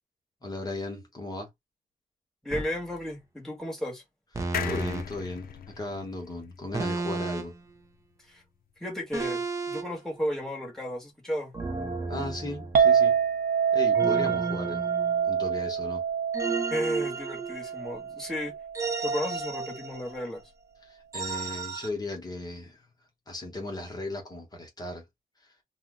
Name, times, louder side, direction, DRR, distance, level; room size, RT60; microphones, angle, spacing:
voice 1, 0.4-1.5 4.6-7.5 12.1-13.2 13.7-14.9 15.3-16.0 20.8-22.9 23.3-25.0, left 2 dB, 25° left, 1.0 m, -36 dB
voice 2, 2.4-4.0 8.3-8.4 8.8-11.5 16.7-18.5 19.0-20.4, equal, 5° left, 1.2 m, -33 dB
sound 1, 2.5-2.8 4.3-5.1 6.7-7.6 9.1-9.9 11.5-13.0 13.9-15.5 16.3-18.0 18.7-20.2 21.1-21.9, right 4 dB, 20° right, 0.5 m, -33 dB
sound 2, 4.5-8.0 8.4-8.5 8.7-8.8, left 8 dB, 80° left, 0.4 m, -39 dB
Chink clink, 12.8-19.0, right 7 dB, 80° right, 0.7 m, -26 dB
2.6 x 2.2 x 3.6 m
wide cardioid pair, 175°, 15 cm